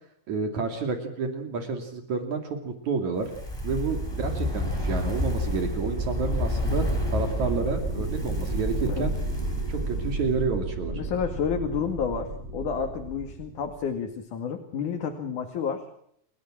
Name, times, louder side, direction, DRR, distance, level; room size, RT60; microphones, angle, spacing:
voice 1, 0.3-3.3 3.6-6.8 7.1-9.1 9.7-11.0, right 5 dB, 70° right, 5 dB, 4.0 m, -30 dB
Fire, 3.2-10.5 10.8-10.9, left 2 dB, 10° left, 3.5 m, -32 dB
sound 1, 3.3-14.0, right 2 dB, 20° right, 7.8 m, -32 dB
voice 2, 10.9-15.8, left 6 dB, 80° left, 4 dB, 3.7 m, -30 dB
29.5 x 16.5 x 7.5 m, 0.70 s
omnidirectional pair, 3.5 m